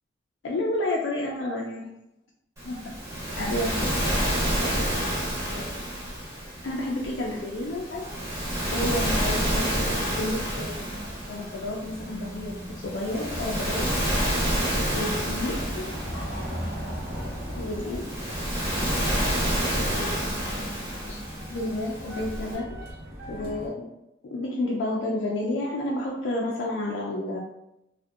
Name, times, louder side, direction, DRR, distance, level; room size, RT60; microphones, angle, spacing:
voice 1, 0.4-2.0 2.6-2.9 3.4-4.2 4.6-4.8 5.5-5.7 6.6-8.1 8.7-10.8 11.3-13.8 14.9-16.5 17.6-18.0 19.8-20.7 21.1-21.2 21.5-22.8 23.3-23.9 24.3-27.4, left 1 dB, 75° left, -3 dB, 0.4 m, -31 dB
Waves surf, 2.6-22.6, equal, 15° right, 0.6 m, -29 dB
sound 1, 8.7-23.7, equal, 50° right, 0.9 m, -38 dB
2.6 x 2.1 x 2.3 m, 0.87 s
head